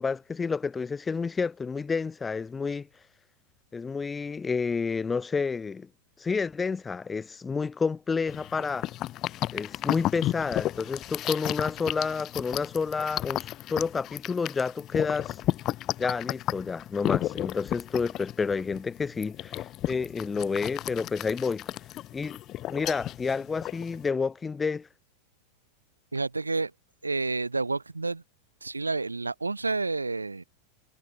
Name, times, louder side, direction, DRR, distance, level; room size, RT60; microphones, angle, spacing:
voice 1, 0.0-2.9 3.7-5.9 6.2-8.9 9.5-15.4 16.0-21.7 22.1-22.4 22.7-24.9, left 5 dB, 15° left, 4.9 m, -30 dB
sound 1, 8.3-24.1, left 14 dB, 35° left, 1.9 m, -33 dB
voice 2, 26.1-26.7 27.0-28.2 28.6-30.4, right 3 dB, 80° right, 3.1 m, -29 dB
figure-of-eight pair, 90°, 0 cm